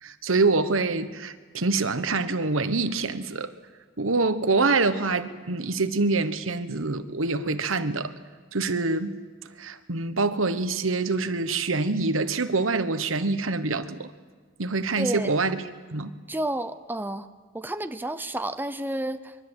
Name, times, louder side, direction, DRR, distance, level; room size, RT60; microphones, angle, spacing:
voice 1, 0.0-3.5 4.0-8.1 8.5-9.2 9.6-14.1 14.6-16.1, right 3 dB, 90° right, 1.3 m, -25 dB
voice 2, 15.0-15.3 16.3-17.3 17.5-19.4, right 1 dB, 10° right, 0.8 m, -30 dB
25.0 x 23.0 x 8.1 m
head